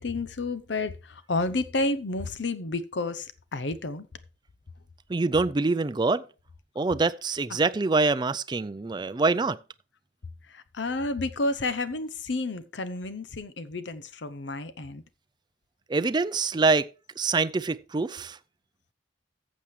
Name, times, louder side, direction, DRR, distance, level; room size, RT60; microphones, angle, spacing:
voice 1, 0.0-4.1 10.5-15.0, left 2 dB, 70° left, 0.8 m, -31 dB
voice 2, 5.1-6.3 6.8-9.6 15.9-16.9 17.2-18.4, right 3 dB, 25° right, 0.4 m, -25 dB
14.5 x 7.4 x 3.2 m
head